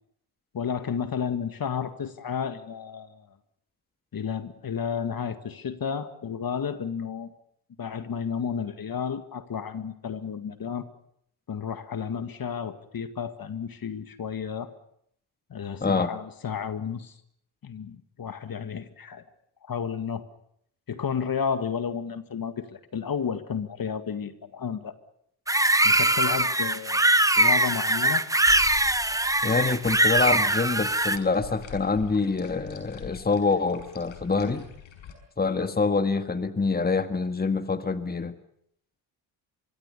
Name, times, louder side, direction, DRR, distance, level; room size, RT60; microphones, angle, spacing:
voice 1, 0.5-3.3 4.1-7.3 7.8-10.9 11.5-14.7 15.5-17.1 17.6-19.2 19.6-20.2 20.9-25.0 25.8-27.0 27.4-28.2, left 7 dB, 45° left, 10 dB, 2.0 m, -32 dB
voice 2, 15.8-16.1 29.4-34.7 35.4-38.3, left 4 dB, 20° left, 9 dB, 1.8 m, -26 dB
sound 1, 25.5-31.2, right 1 dB, 5° right, 1.3 m, -22 dB
sound 2, 28.5-35.2, left 8 dB, 70° left, 5.8 m, -45 dB
25.0 x 23.0 x 6.9 m, 0.71 s
supercardioid pair, 65°, 49 cm